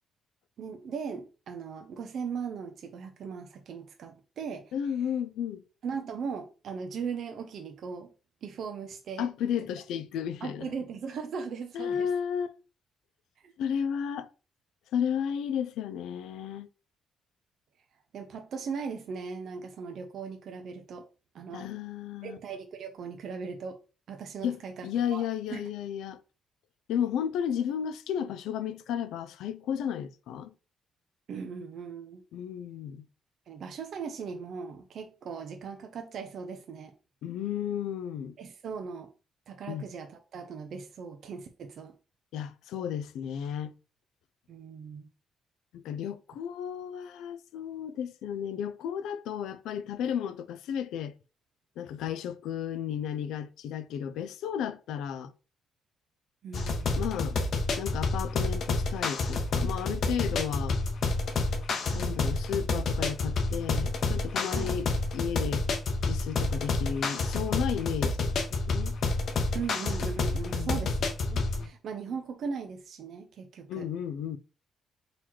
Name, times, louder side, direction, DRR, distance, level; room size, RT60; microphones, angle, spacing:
voice 1, 0.6-4.7 5.8-8.1 8.4-9.3 10.4-12.1 13.4-13.5 18.1-21.1 21.3-21.7 22.2-23.8 24.1-25.2 25.5-25.6 31.3-32.2 33.5-36.9 38.4-39.1 39.5-41.9 44.5-45.1 56.4-57.1 61.9-62.3 64.5-64.8 69.5-70.9 71.3-73.9, right 6 dB, 55° right, 0.6 m, -38 dB
voice 2, 4.7-5.6 9.2-10.7 11.7-12.5 13.6-14.3 14.9-16.7 21.5-22.4 24.4-26.2 26.9-30.5 32.3-33.1 37.2-38.4 39.7-39.9 42.3-43.8 45.7-51.1 51.8-55.3 57.0-57.4 57.8-60.8 61.9-64.9 65.1-65.6 66.0-69.0 70.3-70.9 71.5-71.7 73.7-74.4, left 8 dB, 90° left, 0.4 m, -33 dB
sound 1, 56.5-71.7, left 3 dB, 50° left, 0.8 m, -29 dB
4.0 x 3.0 x 4.4 m
cardioid pair, 155°, 0 cm